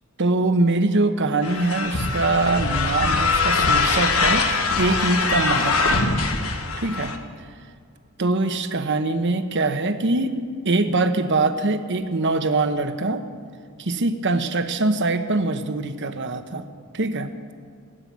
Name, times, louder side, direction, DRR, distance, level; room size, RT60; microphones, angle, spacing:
voice 1, 0.2-4.5 4.8-6.0 6.8-7.1 8.2-10.3 10.6-13.2 13.8-16.6 16.9-17.3, right 2 dB, 55° right, 9 dB, 1.0 m, -23 dB
sound 1, 1.4-7.2, left 4 dB, 75° left, 1.4 m, -22 dB
18.0 x 7.8 x 9.4 m, 2.2 s
head